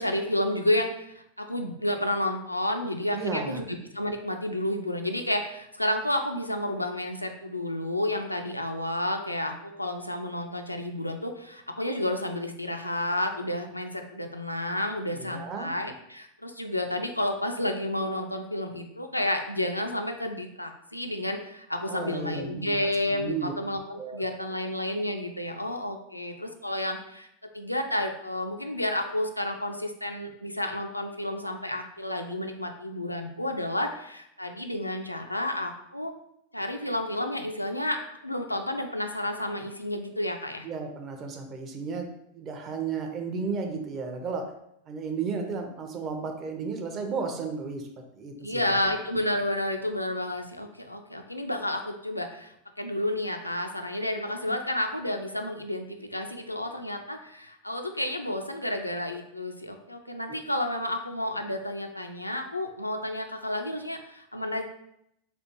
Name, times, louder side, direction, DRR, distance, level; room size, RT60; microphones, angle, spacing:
voice 1, 0.0-27.3 27.5-36.1 36.5-38.0 38.2-40.7 48.4-64.6, left 1 dB, 85° left, 4 dB, 0.3 m, -31 dB
voice 2, 3.1-3.6 15.1-15.7 21.9-23.5 24.0-24.2 40.6-42.1 42.3-44.5 44.9-47.9 48.1-48.9, right 5 dB, 30° right, 4 dB, 0.5 m, -34 dB
3.3 x 2.4 x 2.9 m, 0.77 s
figure-of-eight pair, 90°, 0 cm